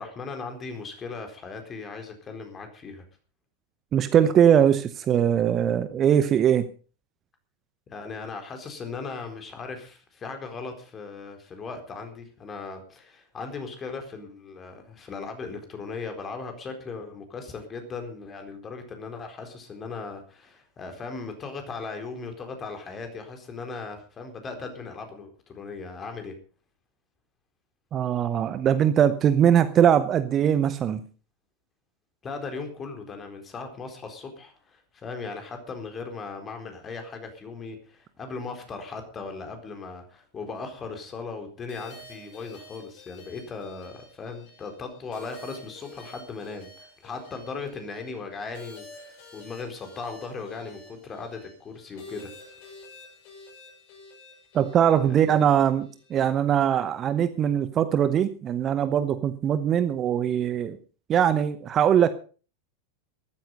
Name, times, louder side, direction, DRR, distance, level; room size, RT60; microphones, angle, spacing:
voice 1, 0.0-3.0 7.9-26.3 32.2-52.3 55.0-55.5, left 4 dB, 20° left, 6 dB, 4.2 m, -38 dB
voice 2, 3.9-6.6 27.9-31.0 54.5-60.8 61.1-62.1, right 9 dB, 30° right, 13 dB, 0.9 m, -21 dB
sound 1, 41.7-56.1, left 2 dB, 50° left, 6.7 m, -49 dB
14.0 x 13.0 x 5.4 m, 0.38 s
figure-of-eight pair, 90°, 0 cm